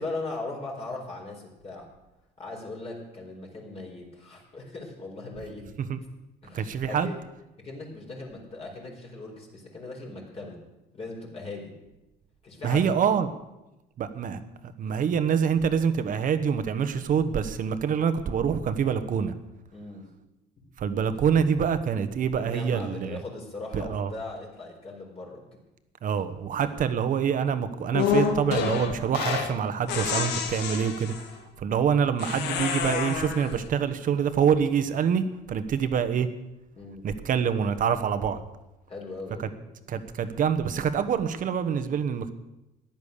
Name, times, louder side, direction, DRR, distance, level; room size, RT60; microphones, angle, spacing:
voice 1, 0.0-1.9 2.4-5.7 6.4-7.1 7.6-10.6 10.9-11.8 12.4-12.9 19.7-20.1 22.4-25.5 26.7-26.8 36.8-37.0 38.9-39.6, left 2 dB, 35° left, -1 dB, 4.3 m, -39 dB
voice 2, 6.5-7.1 12.6-13.3 14.0-14.4 14.8-19.3 20.8-23.2 23.7-24.1 26.0-31.3 31.6-36.3 37.0-38.4 39.9-42.3, right 7 dB, 50° right, 11 dB, 1.2 m, -26 dB
sound 1, 27.9-29.6 29.9-31.3 32.2-33.6, left 7 dB, 85° left, 1.5 m, -28 dB
14.0 x 10.5 x 6.7 m, 0.95 s
cardioid pair, 110°, 17 cm